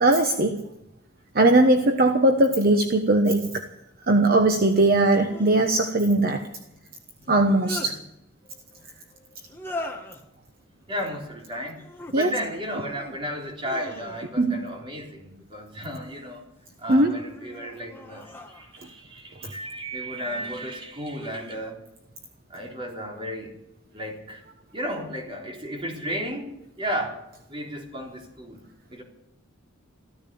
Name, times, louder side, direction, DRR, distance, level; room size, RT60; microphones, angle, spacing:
voice 1, 0.0-0.6 1.3-3.6 4.1-6.5 7.3-7.9 12.1-12.3 14.4-14.6 16.9-17.1, right 2 dB, 45° right, 6 dB, 1.1 m, -19 dB
sound 1, 2.7-2.8 5.1-5.7 7.2-7.9 9.5-10.2 11.7-12.2 12.7-13.2 13.6-14.5 15.7-16.4 17.0-19.0 20.1-20.6 21.1-21.7, left 1 dB, 10° left, 1.7 m, -41 dB
voice 2, 7.2-7.8 8.4-8.9 9.1-9.4 10.9-11.8 12.1-16.4 16.8-21.8 22.5-23.6 23.9-24.4 24.7-27.2 27.5-28.6 28.9-29.0, equal, 25° right, 0 dB, 3.8 m, -34 dB
14.5 x 14.0 x 7.0 m, 0.86 s
head